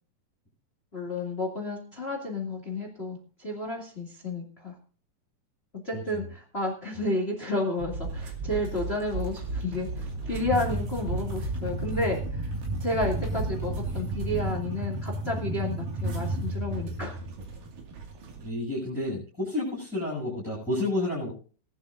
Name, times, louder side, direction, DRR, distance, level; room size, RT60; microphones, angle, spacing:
voice 1, 0.9-4.7 5.7-12.5 12.8-17.2, left 2 dB, 20° left, 3 dB, 2.3 m, -31 dB
sound 1, 7.8-14.5, right 2 dB, 35° right, 5.6 m, -35 dB
sound 2, 8.0-18.5, right 2 dB, 85° right, 3.9 m, -34 dB
voice 2, 18.4-21.3, left 2 dB, 5° left, -5 dB, 7.5 m, -30 dB
19.5 x 12.0 x 2.6 m, 0.38 s
omnidirectional pair, 3.7 m